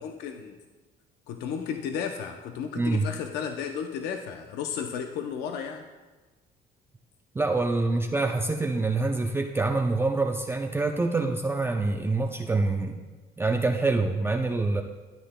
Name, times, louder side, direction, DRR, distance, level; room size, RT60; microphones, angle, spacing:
voice 1, 0.0-0.6 1.3-5.8 7.9-8.0, left 7 dB, 80° left, 5 dB, 0.6 m, -33 dB
voice 2, 2.8-3.1 7.3-13.0 13.4-14.8, right 3 dB, 15° right, 2 dB, 0.5 m, -26 dB
13.5 x 9.0 x 2.2 m, 1.3 s
cardioid pair, 110°, 17 cm